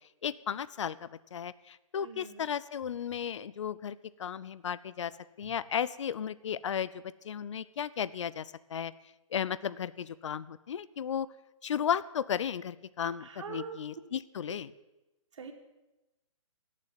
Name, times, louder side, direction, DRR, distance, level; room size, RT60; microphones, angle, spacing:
voice 1, 0.2-5.1 5.4-8.5 8.7-8.9 9.3-11.3 11.6-14.7, left 8 dB, 60° left, 18 dB, 0.6 m, -34 dB
voice 2, 2.0-2.5 13.2-13.8 14.4-14.6 15.4-15.5, right 6 dB, 60° right, 4 dB, 2.6 m, -43 dB
17.0 x 7.5 x 9.4 m, 1.0 s
figure-of-eight pair, 130°, 17 cm